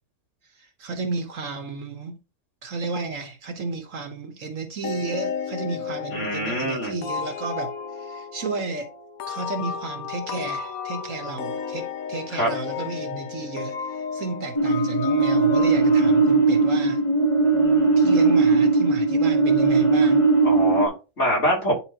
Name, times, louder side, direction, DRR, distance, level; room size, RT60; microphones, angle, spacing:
voice 1, 0.6-2.2 2.6-8.9 9.3-17.0 18.0-20.3, right 4 dB, 65° right, 1.5 m, -32 dB
sound 1, 4.8-17.2, left 6 dB, 75° left, 1.2 m, -33 dB
voice 2, 6.1-6.9 12.3-12.5 20.4-21.7, equal, 50° left, 3.5 m, -24 dB
sound 2, 14.6-20.9, right 3 dB, 20° left, 1.3 m, -19 dB
10.0 x 3.8 x 2.9 m
omnidirectional pair, 1.5 m